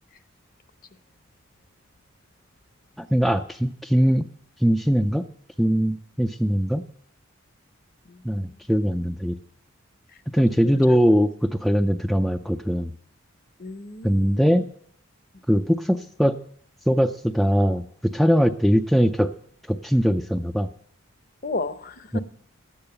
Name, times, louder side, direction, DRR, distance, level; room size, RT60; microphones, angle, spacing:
voice 1, 3.0-4.3 4.6-5.3 5.6-6.8 8.2-9.4 10.3-12.9 14.0-14.6 15.5-16.4 16.9-19.3 19.7-20.7 22.1-22.2, equal, ahead, 6 dB, 0.4 m, -21 dB
voice 2, 8.1-8.6 10.6-11.0 13.6-14.6 21.4-22.2, left 2 dB, 45° left, 12 dB, 0.8 m, -34 dB
12.0 x 8.8 x 6.8 m, 0.64 s
head